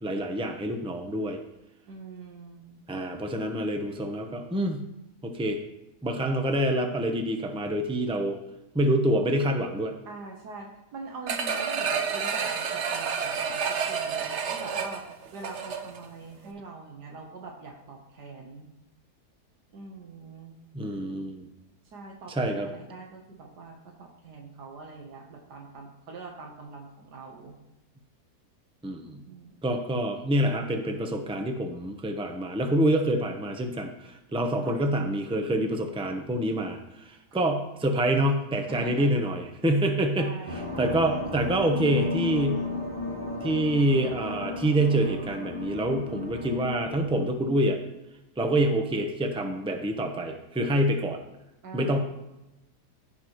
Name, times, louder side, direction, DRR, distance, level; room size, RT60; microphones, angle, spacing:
voice 1, 0.0-1.4 2.9-4.8 5.2-5.6 6.0-8.4 8.7-9.9 20.7-21.5 22.3-22.7 28.8-29.2 29.6-42.6 43.4-47.8 48.4-51.2 51.7-52.0, right 1 dB, 5° right, 4 dB, 0.4 m, -26 dB
voice 2, 1.9-2.8 10.1-15.0 15.3-18.7 19.7-20.5 21.9-27.6 29.3-29.8 34.6-34.8 37.4-37.5 38.7-39.1 40.2-40.9 51.6-52.0, right 3 dB, 75° right, 1 dB, 1.7 m, -43 dB
sound 1, 11.3-16.1 16.5-16.6, right 6 dB, 55° right, 0.9 m, -30 dB
sound 2, 40.5-47.2, left 3 dB, 20° right, 2.7 m, -34 dB
15.0 x 5.9 x 3.1 m, 0.95 s
omnidirectional pair, 1.8 m